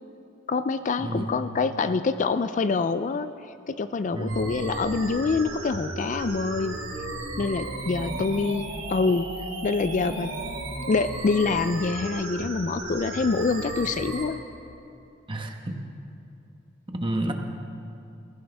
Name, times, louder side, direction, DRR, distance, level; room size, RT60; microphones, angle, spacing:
voice 1, 0.5-3.3 3.7-6.8 7.4-9.3 9.6-10.3 10.9-14.4, left 4 dB, 40° left, 11 dB, 0.4 m, -26 dB
voice 2, 1.0-1.3 4.1-4.4 8.1-8.3 15.3-15.8 16.9-17.3, right 1 dB, 25° right, 3 dB, 1.2 m, -30 dB
sound 1, 4.3-14.3, right 2 dB, 80° right, 2.8 m, -34 dB
20.5 x 15.0 x 3.4 m, 2.8 s
head